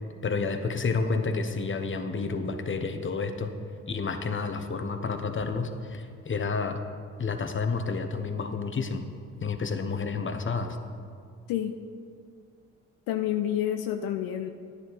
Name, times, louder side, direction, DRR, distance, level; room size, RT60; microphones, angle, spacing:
voice 1, 0.2-3.5 3.9-6.8 7.2-9.0 9.4-10.8, left 4 dB, 30° left, 7 dB, 1.1 m, -30 dB
voice 2, 13.1-14.5, left 11 dB, 70° left, 7 dB, 0.6 m, -28 dB
10.0 x 9.6 x 4.1 m, 2.3 s
hypercardioid pair, 50°, 37 cm